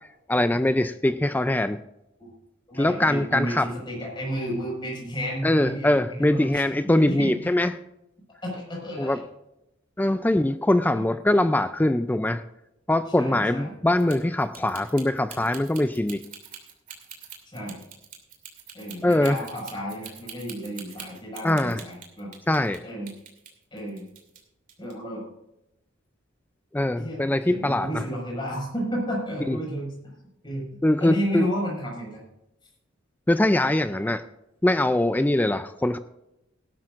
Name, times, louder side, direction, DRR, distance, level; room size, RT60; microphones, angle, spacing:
voice 1, 0.3-1.8 2.8-3.8 5.4-7.7 9.0-9.2 10.0-12.4 12.9-16.2 19.0-19.4 21.4-21.8 22.5-22.8 26.7-28.1 29.5-29.6 30.8-31.5 33.3-34.2 34.6-36.0, left 1 dB, 10° left, 11 dB, 0.4 m, -22 dB
voice 2, 2.7-7.4 8.4-9.2 11.0-11.1 13.1-13.7 17.5-17.8 18.7-22.3 22.8-23.1 23.7-24.1 24.8-25.2 27.0-30.1 30.4-32.2, equal, 25° left, -3 dB, 5.7 m, -32 dB
sound 1, 14.0-22.8 23.1-24.4 24.7-24.9, right 8 dB, 45° right, 2.7 m, -43 dB
18.5 x 12.0 x 2.5 m, 0.87 s
head